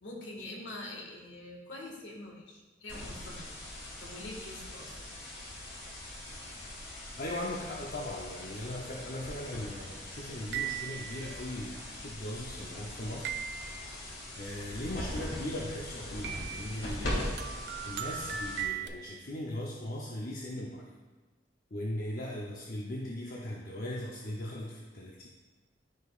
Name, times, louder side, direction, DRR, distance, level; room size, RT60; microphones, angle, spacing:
voice 1, 0.0-3.5 4.0-5.1, left 1 dB, 70° left, -2 dB, 1.8 m, -45 dB
sound 1, 2.9-18.9, left 1 dB, 85° left, 2.3 m, -41 dB
voice 2, 7.2-13.4 14.4-17.4 17.8-20.9 21.7-25.3, left 1 dB, 50° left, -2 dB, 0.7 m, -39 dB
sound 2, 10.5-11.3 13.2-14.0 16.2-16.8 17.4-18.9, right 9 dB, 65° right, 0.5 m, -37 dB
13.5 x 5.2 x 2.5 m, 1.2 s
head